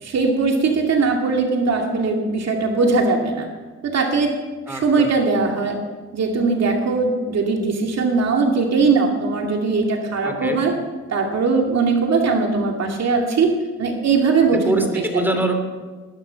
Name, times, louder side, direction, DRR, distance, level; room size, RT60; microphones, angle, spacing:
voice 1, 0.0-3.5 3.8-4.3 4.7-5.8 6.1-10.7 11.1-13.5 13.8-15.2, right 4 dB, 60° right, 2 dB, 2.4 m, -20 dB
voice 2, 4.7-5.1 10.2-10.6 14.6-15.5, right 1 dB, 5° right, 5 dB, 3.0 m, -23 dB
20.0 x 11.5 x 5.7 m, 1.3 s
cardioid pair, 90°, 30 cm